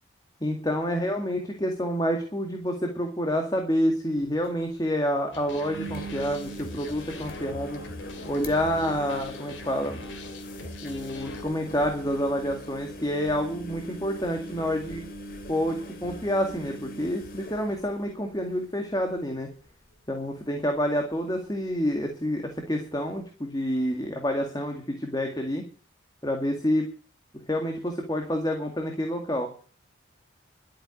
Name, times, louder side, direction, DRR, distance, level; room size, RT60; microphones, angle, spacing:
voice 1, 0.4-7.8 8.2-10.0 10.8-15.0 15.5-19.5 20.1-25.7 26.2-26.9 27.5-29.5, equal, 20° left, 3 dB, 2.0 m, -28 dB
sound 1, 4.2-4.3 4.4-4.5 5.5-18.6 18.9-19.3 19.6-19.7 21.6-21.7, right 1 dB, 50° left, 2.6 m, -41 dB
sound 2, 5.3-11.4, left 2 dB, 70° left, 2.9 m, -42 dB
12.0 x 8.9 x 8.3 m, 0.40 s
head